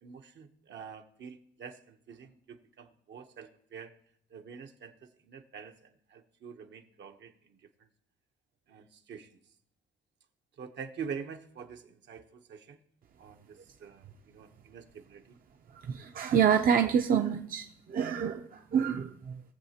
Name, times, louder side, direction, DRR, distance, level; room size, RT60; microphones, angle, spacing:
voice 1, 0.0-3.9 4.3-7.6 8.7-9.3 10.6-12.8 13.2-15.2, right 6 dB, 65° right, 5 dB, 1.0 m, -46 dB
voice 2, 15.7-19.4, right 7 dB, 45° right, 5 dB, 0.6 m, -27 dB
20.0 x 7.2 x 2.9 m, 0.70 s
cardioid pair, 90°, 20 cm